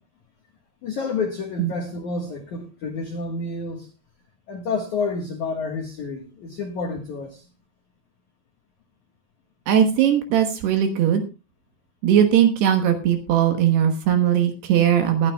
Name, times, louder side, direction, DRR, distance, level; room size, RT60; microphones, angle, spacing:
voice 1, 0.8-3.9 4.5-7.5, left 4 dB, 80° left, 4 dB, 1.7 m, -29 dB
voice 2, 9.7-11.2 12.0-15.3, right 9 dB, 70° right, 7 dB, 2.8 m, -19 dB
20.0 x 9.9 x 2.3 m, 0.30 s
omnidirectional pair, 5.7 m